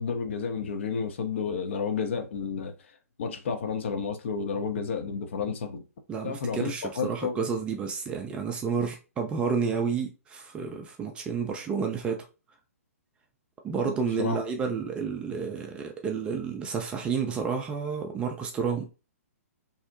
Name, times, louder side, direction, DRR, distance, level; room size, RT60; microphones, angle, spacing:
voice 1, 0.0-2.7 3.2-5.8 6.2-7.4 13.8-14.4, left 5 dB, 50° left, 0.5 m, -31 dB
voice 2, 6.1-12.3 13.6-18.9, right 6 dB, 15° right, 0.3 m, -30 dB
2.7 x 2.0 x 2.5 m
figure-of-eight pair, 120°, 8 cm